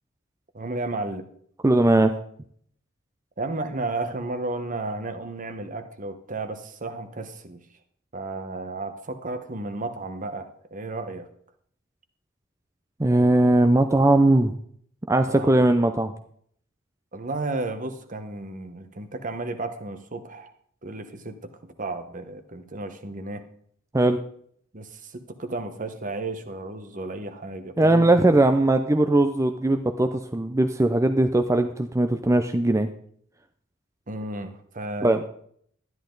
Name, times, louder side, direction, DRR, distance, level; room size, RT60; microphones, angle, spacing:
voice 1, 0.5-1.3 3.4-7.6 8.1-11.3 15.3-15.7 17.1-20.5 20.8-23.4 24.7-28.1 34.1-35.3, right 2 dB, 40° right, 9 dB, 1.1 m, -33 dB
voice 2, 1.6-2.1 13.0-14.5 15.1-16.1 23.9-24.2 27.8-32.9 35.0-35.3, right 2 dB, 15° right, 8 dB, 0.5 m, -19 dB
12.5 x 10.5 x 3.9 m, 0.62 s
head